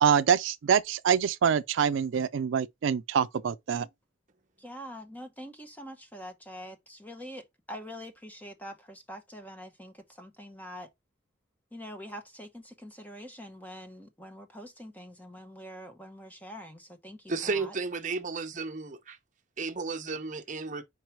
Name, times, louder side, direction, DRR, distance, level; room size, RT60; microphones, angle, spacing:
voice 1, 0.0-3.9, right 7 dB, 75° right, 0.4 m, -25 dB
voice 2, 4.6-10.9 11.7-17.7, equal, 10° left, 0.9 m, -45 dB
voice 3, 17.3-19.2 19.6-20.8, right 4 dB, 40° right, 0.8 m, -33 dB
4.7 x 4.6 x 4.5 m
head